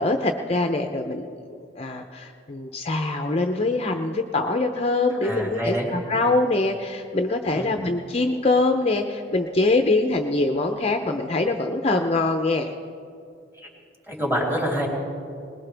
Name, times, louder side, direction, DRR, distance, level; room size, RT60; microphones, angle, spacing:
voice 1, 0.0-12.7, left 2 dB, 30° left, 5 dB, 0.6 m, -24 dB
voice 2, 5.2-5.9 7.5-7.7 13.6-13.7 14.1-14.9, equal, 10° right, -3 dB, 3.4 m, -26 dB
20.5 x 20.5 x 3.4 m, 2.4 s
head